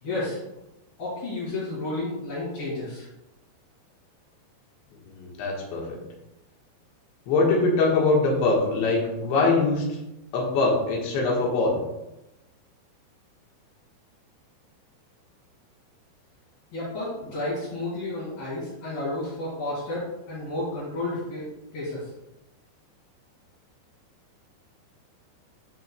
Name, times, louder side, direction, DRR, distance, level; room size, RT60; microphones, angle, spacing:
voice 1, 0.0-0.4 1.0-3.1 16.7-21.5 21.7-22.0, left 2 dB, 60° left, -12 dB, 4.0 m, -31 dB
voice 2, 5.0-6.0 7.3-10.0 10.3-11.8, left 3 dB, 85° left, -2 dB, 3.6 m, -23 dB
11.5 x 4.5 x 2.2 m, 0.93 s
omnidirectional pair, 5.1 m